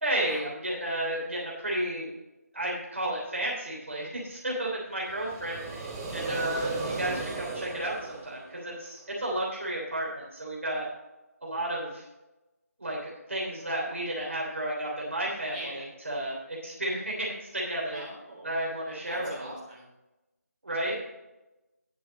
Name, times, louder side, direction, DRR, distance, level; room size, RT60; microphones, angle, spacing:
voice 1, 0.0-2.1 2.5-10.9 11.4-12.0 12.8-18.0 18.4-19.5 20.6-21.0, right 1 dB, 55° right, -4 dB, 3.2 m, -32 dB
sound 1, 5.0-9.0, right 3 dB, 5° right, 0.5 m, -36 dB
voice 2, 6.3-6.7 15.5-15.9 17.9-18.6 18.9-19.9, right 1 dB, 30° right, -5 dB, 3.9 m, -42 dB
10.5 x 8.5 x 4.0 m, 1.0 s
figure-of-eight pair, 160°, 9 cm